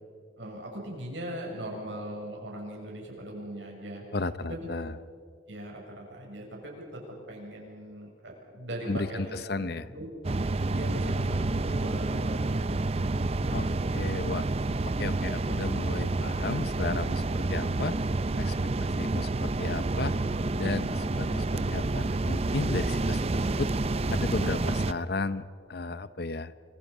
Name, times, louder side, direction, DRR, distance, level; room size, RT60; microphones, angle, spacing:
voice 1, 0.4-4.0 4.5-4.7 5.5-7.0 7.3-10.1 10.7-12.9 13.2-13.8, right 1 dB, 80° right, -1 dB, 7.6 m, -40 dB
voice 2, 4.1-4.9 8.9-9.9 13.5-13.7 13.9-14.5 14.8-18.0 18.4-18.5 18.8-20.2 20.6-23.7 24.1-26.5, left 3 dB, 55° left, 14 dB, 0.8 m, -34 dB
sound 1, 10.2-24.9, right 2 dB, 35° right, 0.6 m, -29 dB
30.0 x 25.5 x 5.5 m, 2.3 s
head